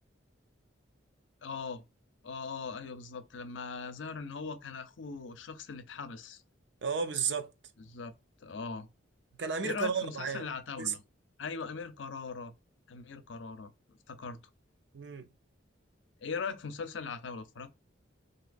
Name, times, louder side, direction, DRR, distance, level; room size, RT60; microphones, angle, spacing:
voice 1, 1.4-1.8 2.2-6.4 7.9-8.1 8.4-8.9 9.6-11.0 11.4-12.5 12.9-14.4 16.2-17.7, left 5 dB, 70° left, 0.6 m, -40 dB
voice 2, 6.8-7.5 9.4-10.5 10.8-10.9 14.9-15.3, right 6 dB, 60° right, 0.6 m, -33 dB
3.9 x 2.7 x 2.5 m
head